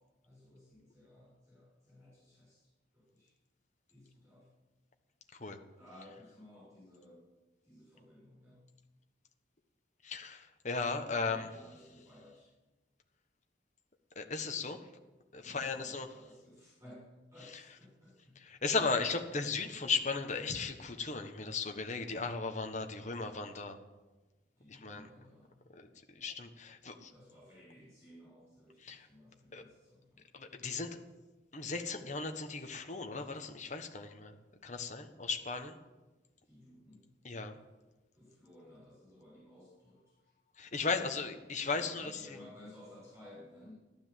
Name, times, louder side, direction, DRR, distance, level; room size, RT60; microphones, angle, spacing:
voice 1, 0.0-3.3 3.9-4.5 5.8-7.3 7.6-8.6 11.2-12.5 15.4-18.4 24.6-25.6 27.1-30.3 36.4-37.1 38.1-40.3 40.9-41.1 41.7-43.8, left 1 dB, 15° right, -8 dB, 7.0 m, -57 dB
voice 2, 10.0-11.5 14.1-14.8 15.3-16.1 18.4-23.8 24.7-25.1 25.7-25.9 26.1-27.1 28.8-29.1 29.5-29.6 30.3-31.0 31.5-34.3 34.6-35.8 37.2-37.6 40.6-42.4, left 4 dB, 40° left, 5 dB, 1.4 m, -36 dB
14.5 x 12.5 x 7.7 m, 1.1 s
head